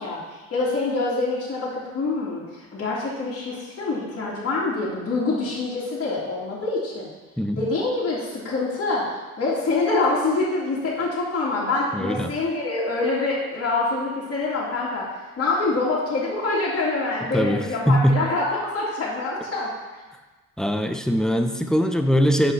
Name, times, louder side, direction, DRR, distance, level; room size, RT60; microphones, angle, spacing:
voice 1, 0.0-7.1 7.6-9.0 9.4-15.1 15.4-19.7, left 3 dB, 50° left, -7 dB, 3.1 m, -25 dB
voice 2, 11.9-12.3 17.3-18.2 20.6-22.5, equal, ahead, 6 dB, 0.8 m, -21 dB
8.1 x 5.8 x 5.9 m, 1.2 s
cardioid pair, 90°, 30 cm